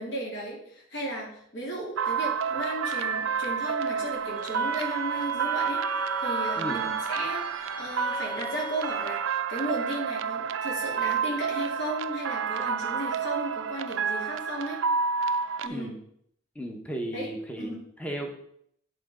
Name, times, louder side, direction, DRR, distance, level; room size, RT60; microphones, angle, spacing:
voice 1, 0.0-14.8 15.6-15.9 17.1-17.3 17.6-17.9, right 1 dB, 60° left, -3 dB, 2.3 m, -35 dB
sound 1, 2.0-15.7, right 6 dB, 75° right, 0.4 m, -29 dB
Bowed string instrument, 4.2-9.4, equal, 25° left, 1.6 m, -42 dB
voice 2, 16.5-18.3, equal, 5° left, 1 dB, 0.8 m, -35 dB
8.6 x 3.9 x 4.9 m, 0.70 s
head